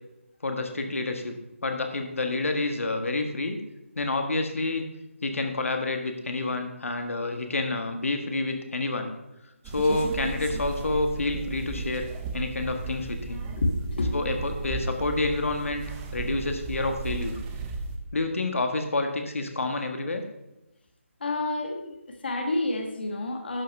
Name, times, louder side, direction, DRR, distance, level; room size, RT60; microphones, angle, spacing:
voice 1, 0.4-1.3 1.6-3.6 3.9-4.8 5.2-9.1 9.6-12.1 12.3-13.5 14.1-15.8 16.1-17.4 18.1-20.2, left 2 dB, 75° left, 5 dB, 1.5 m, -28 dB
sound 1, 9.6-18.0, right 4 dB, 10° right, 0.5 m, -35 dB
voice 2, 13.6-14.1 21.2-23.6, left 2 dB, 45° left, 3 dB, 1.5 m, -29 dB
12.0 x 5.7 x 5.4 m, 0.94 s
figure-of-eight pair, 170°, 7 cm